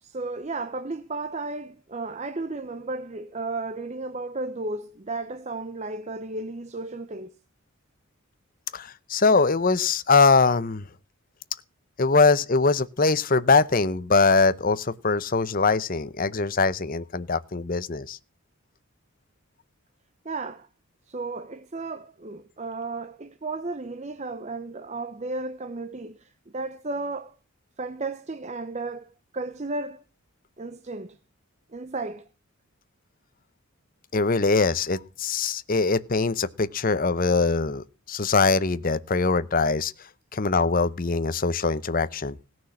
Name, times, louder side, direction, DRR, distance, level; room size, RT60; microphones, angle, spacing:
voice 1, 0.0-7.3 20.2-20.7 21.1-27.3 27.8-30.0 30.6-31.2 31.7-32.3, right 3 dB, 30° right, 0.6 m, -34 dB
voice 2, 8.7-10.9 12.0-18.2 34.1-39.9 40.3-42.4, left 4 dB, 40° left, 0.7 m, -22 dB
17.0 x 6.2 x 8.6 m
head